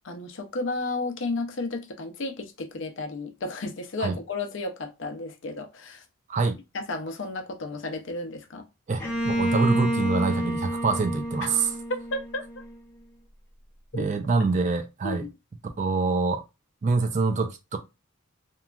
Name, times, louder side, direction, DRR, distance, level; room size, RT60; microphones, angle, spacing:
voice 1, 0.0-6.0 6.7-8.6 11.4-11.5 12.1-12.4 13.9-14.1 15.0-15.3, left 2 dB, 60° left, 0.5 m, -33 dB
voice 2, 8.9-11.7 13.9-15.3 15.8-16.4 16.8-17.8, right 4 dB, 35° right, 0.3 m, -25 dB
Bowed string instrument, 9.0-12.7, equal, 10° left, 0.7 m, -29 dB
2.9 x 2.3 x 2.3 m
head